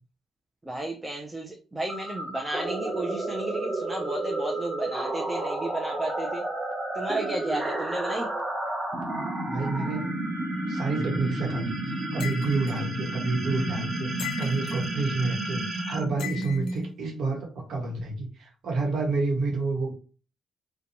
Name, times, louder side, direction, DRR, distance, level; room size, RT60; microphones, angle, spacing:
voice 1, 0.7-6.4 6.9-8.3, right 2 dB, 15° right, 1 dB, 0.4 m, -33 dB
sound 1, 1.9-17.0, right 2 dB, 45° right, 0.7 m, -31 dB
voice 2, 9.4-10.1 10.7-19.9, right 3 dB, 75° right, 0 dB, 0.9 m, -29 dB
sound 2, 12.2-12.8 14.2-14.9 16.2-16.8, left 11 dB, 85° left, 0.4 m, -38 dB
2.5 x 2.1 x 2.9 m, 0.36 s
cardioid pair, 90°, 0 cm